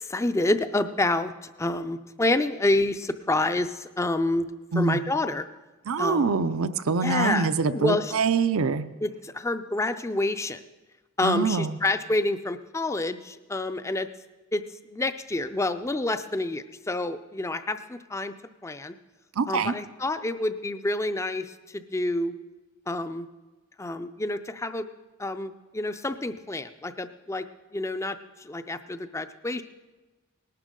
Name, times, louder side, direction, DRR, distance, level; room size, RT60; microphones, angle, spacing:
voice 1, 0.0-4.5 4.8-5.4 6.0-6.3 7.0-8.1 9.0-10.6 11.2-14.1 14.5-14.6 14.9-18.3 18.6-19.0 19.5-22.3 22.9-23.3 23.8-24.9 25.2-27.5 27.7-29.6, left 2 dB, 15° left, 11 dB, 0.4 m, -28 dB
voice 2, 5.9-8.8 11.2-11.8 19.4-19.7, right 4 dB, 65° right, 11 dB, 0.5 m, -25 dB
19.0 x 11.5 x 3.7 m, 1.2 s
head